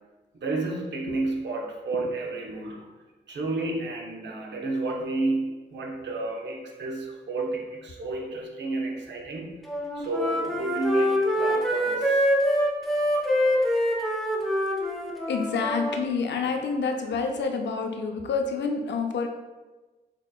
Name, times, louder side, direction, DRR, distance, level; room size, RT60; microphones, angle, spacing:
voice 1, 0.3-2.9 3.3-9.5 10.0-12.3, right 2 dB, 80° right, 1 dB, 0.7 m, -31 dB
Wind instrument woodwind instrument, 9.7-16.1, equal, ahead, 0.8 m, -25 dB
voice 2, 15.3-19.3, left 5 dB, 75° left, 4 dB, 0.5 m, -28 dB
6.1 x 2.9 x 2.2 m, 1.2 s
cardioid pair, 60°, 18 cm